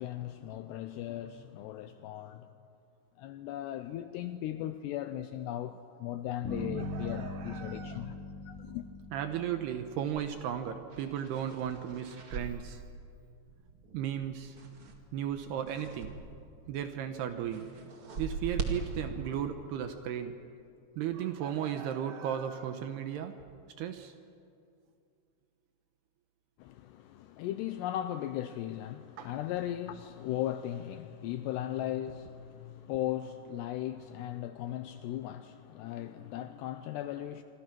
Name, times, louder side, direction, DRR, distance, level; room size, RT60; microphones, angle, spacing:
voice 1, 0.0-2.5 3.2-8.2 8.5-8.9 26.6-37.4, left 12 dB, 80° left, 2.5 m, -37 dB
sound 1, 6.4-10.4, left 1 dB, 5° left, 3.1 m, -41 dB
voice 2, 6.8-8.0 9.1-12.8 13.9-14.6 15.1-16.2 16.7-17.7 18.2-20.3 21.0-23.4 23.8-24.1 29.2-29.3, right 9 dB, 75° right, 2.6 m, -35 dB
sound 2, 10.1-16.5 16.7-19.4, right 3 dB, 45° right, 1.8 m, -42 dB
26.0 x 26.0 x 6.1 m
omnidirectional pair, 5.5 m